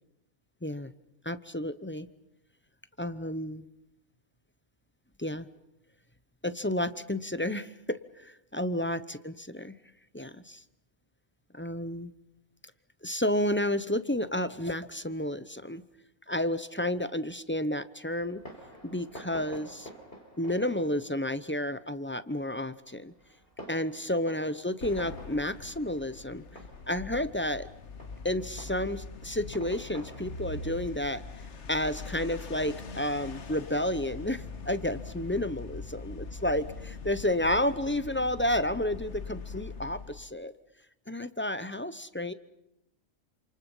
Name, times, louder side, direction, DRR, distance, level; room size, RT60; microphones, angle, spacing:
voice 1, 1.2-2.1 3.0-3.6 5.2-5.5 6.4-9.7 10.1-10.6 11.5-12.1 13.0-15.8 16.3-18.4 18.8-19.9 20.4-23.1 23.7-26.4 26.9-27.7 28.2-31.2 31.7-40.5 41.1-42.3, left 1 dB, 10° left, 13 dB, 0.6 m, -31 dB
Fireworks, 18.2-32.4, equal, 40° left, 5.2 m, -51 dB
sound 1, 24.8-40.3, left 4 dB, 55° left, 1.6 m, -42 dB
28.5 x 27.5 x 5.6 m, 0.88 s
omnidirectional pair, 1.5 m